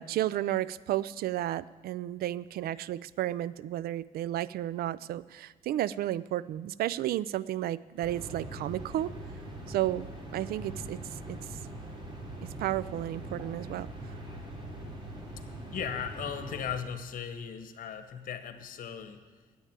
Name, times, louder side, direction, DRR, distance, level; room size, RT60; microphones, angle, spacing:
voice 1, 0.0-9.1 9.7-10.1 10.3-11.0 11.3-11.4 12.4-13.9, right 13 dB, 75° right, 19 dB, 0.4 m, -32 dB
sound 1, 8.0-16.7, right 1 dB, 30° right, 2.8 m, -42 dB
voice 2, 15.7-19.2, left 7 dB, 60° left, 9 dB, 1.2 m, -37 dB
10.0 x 8.8 x 8.9 m, 1.3 s
cardioid pair, 100°, 16 cm